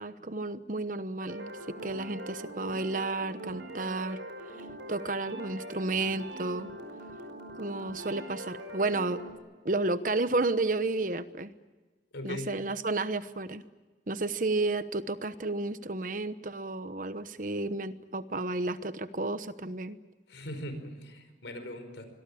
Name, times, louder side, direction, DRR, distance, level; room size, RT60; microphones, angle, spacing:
voice 1, 0.0-4.2 4.9-6.7 7.5-9.2 9.6-11.5 12.2-13.6 14.1-20.0, right 2 dB, 45° right, 12 dB, 1.0 m, -32 dB
sound 1, 1.2-9.3, right 1 dB, 80° right, 5.4 m, -42 dB
voice 2, 12.1-12.5 20.3-22.1, left 1 dB, 85° left, 9 dB, 5.0 m, -39 dB
25.5 x 22.5 x 8.6 m, 1.3 s
head